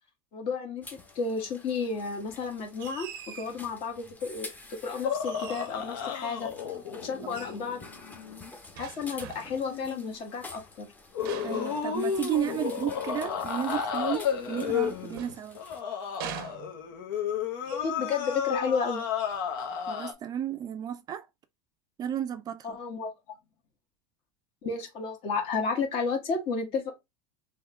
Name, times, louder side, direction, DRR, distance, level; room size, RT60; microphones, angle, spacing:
voice 1, 0.3-3.1 3.3-4.5 4.8-6.5 6.9-7.8 8.8-10.9 17.7-19.0 22.6-23.1 24.6-26.9, left 5 dB, 50° left, 1.5 m, -32 dB
sound 1, 0.8-15.8, left 3 dB, 15° left, 0.8 m, -49 dB
sound 2, 2.8-3.6 5.2-5.9 7.3-7.6 8.8-9.7 11.2-12.5 14.7-15.8 16.2-17.1 17.6-17.9 18.2-18.5 19.2-19.5, right 9 dB, 75° right, 0.6 m, -44 dB
sound 3, 5.0-8.5 9.6-10.1 11.1-20.1, left 7 dB, 75° left, 1.0 m, -32 dB
voice 2, 11.4-15.6 19.9-21.3 22.0-22.8, right 10 dB, 35° right, 0.4 m, -33 dB
3.5 x 2.9 x 3.4 m
supercardioid pair, 110°, 12 cm